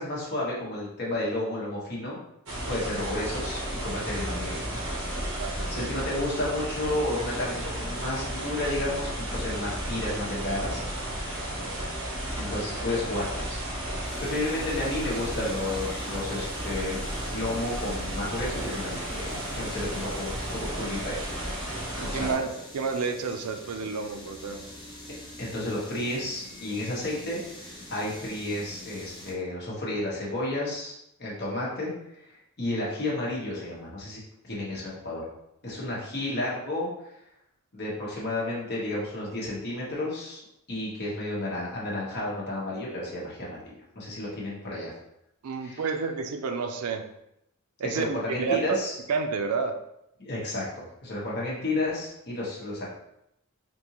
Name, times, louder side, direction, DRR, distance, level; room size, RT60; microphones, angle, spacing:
voice 1, 0.0-2.2 2.7-4.8 5.5-10.8 12.4-17.0 17.3-21.2 21.9-22.5 25.4-35.3 35.6-37.2 37.7-40.4 40.7-44.9 45.6-45.9 47.8-49.0 50.2-52.9, left 1 dB, 50° left, -5 dB, 1.2 m, -32 dB
sound 1, 2.5-22.3, right 1 dB, 65° right, 1.0 m, -33 dB
voice 2, 5.3-5.9 22.0-24.6 45.4-47.1 47.8-48.1 48.4-48.8 49.1-49.8, right 5 dB, 85° right, 6 dB, 0.4 m, -30 dB
sound 2, 14.0-29.3, left 1 dB, 20° left, 0.9 m, -45 dB
3.7 x 2.6 x 2.9 m, 0.81 s
head